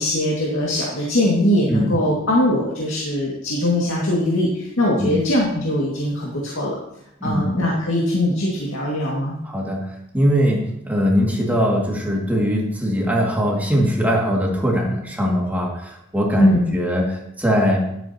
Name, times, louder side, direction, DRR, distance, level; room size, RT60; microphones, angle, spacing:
voice 1, 0.0-6.8 7.2-9.4 16.4-16.7, left 1 dB, 80° left, -4 dB, 2.1 m, -21 dB
voice 2, 9.4-17.8, equal, 10° right, -2 dB, 2.2 m, -21 dB
12.5 x 11.5 x 2.9 m, 0.80 s
head